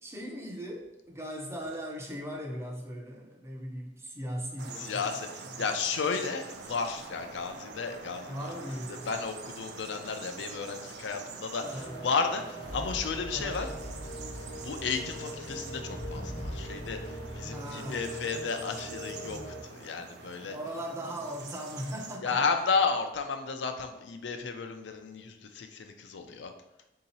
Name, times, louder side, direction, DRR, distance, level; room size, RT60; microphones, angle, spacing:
voice 1, 0.0-5.1 5.5-5.7 8.3-9.1 11.6-12.0 13.3-13.7 17.5-18.3 20.5-22.5, equal, 15° right, 0 dB, 0.5 m, -39 dB
sound 1, 4.6-22.2, right 4 dB, 65° right, 0.4 m, -46 dB
voice 2, 4.8-8.5 8.9-13.7 14.5-17.0 17.3-20.6 22.2-26.5, left 5 dB, 85° left, 6 dB, 0.5 m, -33 dB
sound 2, 6.5-14.1, right 1 dB, 85° right, 0.9 m, -54 dB
sound 3, 11.6-19.6, equal, 30° left, 0.6 m, -40 dB
3.7 x 2.8 x 4.2 m, 0.91 s
head